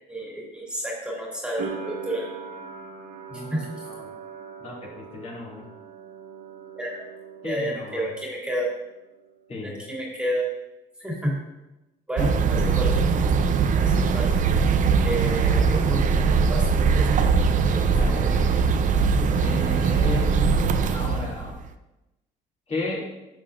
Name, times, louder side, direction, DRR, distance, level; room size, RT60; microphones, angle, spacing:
voice 1, 0.1-2.3 3.5-3.7 6.8-7.1 7.4-8.7 9.6-10.5 11.0-11.3 12.1-13.0 13.7-14.4 15.0-16.0 16.5-17.3 17.7-18.6, right 1 dB, 5° right, -3 dB, 2.2 m, -30 dB
sound 1, 1.6-8.4 8.6-9.5, right 5 dB, 75° right, 1.0 m, -40 dB
voice 2, 3.3-4.1 4.6-5.6 7.4-8.1 9.5-9.8 17.9-18.5 19.4-20.5 20.9-21.6 22.7-23.1, left 2 dB, 40° left, -4 dB, 2.5 m, -34 dB
sound 2, 12.2-21.7, right 5 dB, 50° right, 0.6 m, -21 dB
11.0 x 6.6 x 2.5 m, 0.99 s
cardioid pair, 110°, 17 cm